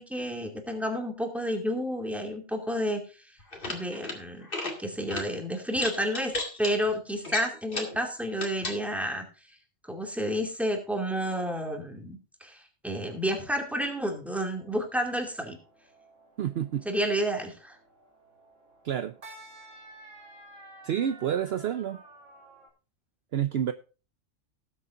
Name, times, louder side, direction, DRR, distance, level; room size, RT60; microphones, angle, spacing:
voice 1, 0.0-3.0 3.7-4.5 4.8-9.3 9.9-15.6 16.8-17.8, equal, ahead, 2.5 m, -30 dB
sound 1, 3.4-4.2 4.4-4.8 5.1-5.3 5.8-6.7 7.2-8.0 8.4-8.8, left 2 dB, 45° left, 2.4 m, -33 dB
sound 2, 14.5-22.7, right 2 dB, 85° right, 3.4 m, -53 dB
voice 2, 16.4-16.9 18.8-19.1 20.8-22.0 23.3-23.7, right 9 dB, 60° right, 0.8 m, -29 dB
18.5 x 8.1 x 2.6 m
omnidirectional pair, 1.3 m